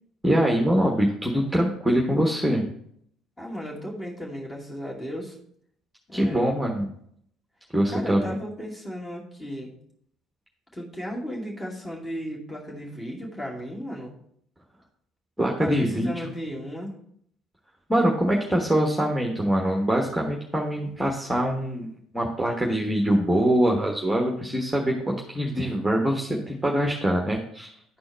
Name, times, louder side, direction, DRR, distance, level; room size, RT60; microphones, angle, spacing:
voice 1, 0.2-2.6 6.1-6.9 7.7-8.4 15.4-16.1 17.9-27.7, equal, 5° right, -1 dB, 1.2 m, -24 dB
voice 2, 3.4-5.4 6.1-6.5 7.9-9.7 10.7-14.2 15.6-16.9, equal, 20° left, -3 dB, 2.4 m, -35 dB
11.0 x 4.4 x 4.5 m, 0.68 s
figure-of-eight pair, 55°, 0 cm